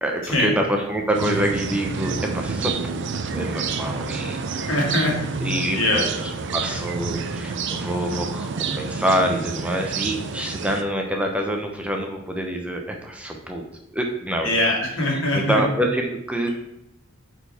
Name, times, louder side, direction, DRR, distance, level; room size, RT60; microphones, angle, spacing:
voice 1, 0.0-3.0 3.3-4.7 5.4-13.6 13.9-14.7 15.3-16.5, equal, 5° right, 1 dB, 0.7 m, -26 dB
sound 1, 1.1-10.8, right 4 dB, 60° right, 0.5 m, -29 dB
voice 2, 4.7-5.2 5.7-6.0 14.4-15.6, left 1 dB, 70° left, -2 dB, 2.1 m, -22 dB
8.6 x 4.5 x 3.4 m, 0.82 s
head